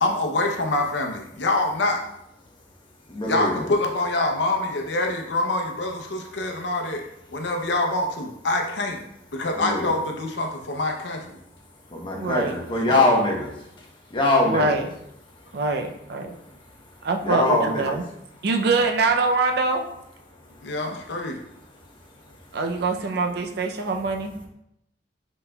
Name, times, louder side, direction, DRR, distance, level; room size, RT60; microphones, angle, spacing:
voice 1, 0.0-2.0 3.2-7.0 7.3-9.0 9.3-11.4 12.8-13.1 20.6-21.4, left 2 dB, 85° left, 2 dB, 0.7 m, -25 dB
voice 2, 3.1-3.7 9.6-9.9 11.9-13.5 14.1-14.8 17.2-18.0, left 2 dB, 25° left, -1 dB, 0.9 m, -22 dB
voice 3, 12.1-12.6 14.4-14.8 15.5-16.4 17.0-18.0 18.4-19.8 22.5-24.3, right 3 dB, 65° right, 4 dB, 0.5 m, -24 dB
5.4 x 4.1 x 2.3 m, 0.80 s
head